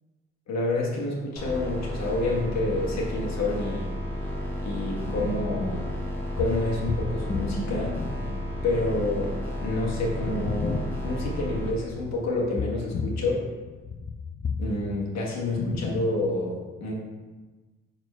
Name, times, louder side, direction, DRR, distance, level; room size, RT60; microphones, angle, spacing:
voice 1, 0.5-3.9 4.6-5.9 6.4-7.9 8.6-9.3 9.6-13.4 14.6-16.9, left 2 dB, 60° left, -3 dB, 1.7 m, -28 dB
sound 1, 1.4-11.7, equal, 5° left, 1.4 m, -32 dB
sound 2, 5.0-13.3 13.6-16.0, left 4 dB, 30° left, 0.5 m, -34 dB
4.5 x 4.0 x 5.6 m, 1.3 s
cardioid pair, 90°, 30 cm